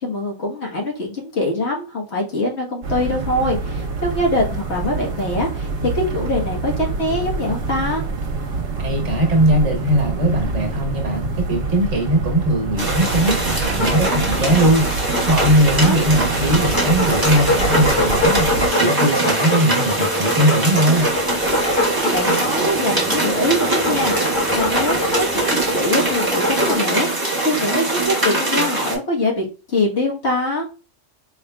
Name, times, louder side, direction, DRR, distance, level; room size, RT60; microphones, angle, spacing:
voice 1, 0.0-8.0 15.8-16.0 22.1-30.7, left 1 dB, 60° left, -1 dB, 1.5 m, -23 dB
sound 1, 2.8-18.7, right 3 dB, 85° right, 1.3 m, -26 dB
voice 2, 8.8-14.9 15.3-21.1, right 1 dB, 70° right, 3 dB, 1.6 m, -19 dB
sound 2, 12.8-28.9, right 2 dB, 20° right, 1.2 m, -22 dB
sound 3, 13.8-26.8, left 1 dB, 25° left, 1.2 m, -24 dB
4.3 x 3.6 x 2.2 m, 0.35 s
omnidirectional pair, 1.3 m